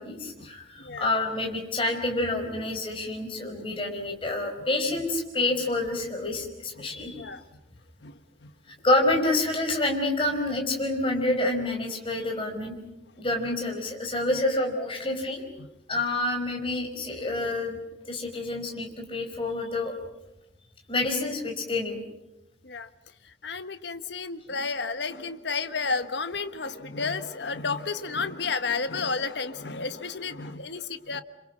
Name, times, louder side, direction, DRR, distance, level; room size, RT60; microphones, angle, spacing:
voice 1, 0.0-7.3 8.8-12.8 13.2-15.4 15.9-19.9 20.9-22.0, left 2 dB, 30° left, 3 dB, 5.2 m, -28 dB
voice 2, 0.8-1.1 6.8-7.4 8.0-8.1 8.4-8.5 22.6-22.9 23.4-31.2, left 4 dB, 70° left, 11 dB, 1.3 m, -32 dB
28.0 x 26.5 x 6.3 m, 0.97 s
head